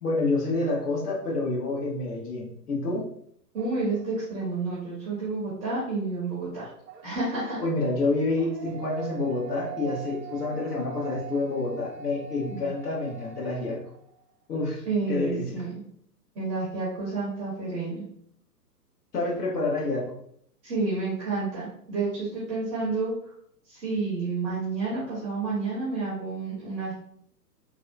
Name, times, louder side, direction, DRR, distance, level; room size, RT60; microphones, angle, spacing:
voice 1, 0.0-3.0 7.6-13.8 14.5-15.6 19.1-20.1, left 2 dB, 65° left, -3 dB, 1.3 m, -28 dB
voice 2, 3.5-6.7 7.0-7.6 12.5-12.7 14.9-15.8 16.3-18.0 20.6-23.3 23.7-26.9, right 3 dB, 15° right, -7 dB, 0.6 m, -30 dB
sound 1, 3.6-4.4 6.8-14.2, right 7 dB, 75° right, 0.6 m, -43 dB
3.4 x 2.2 x 2.4 m, 0.67 s
figure-of-eight pair, 125°, 50 cm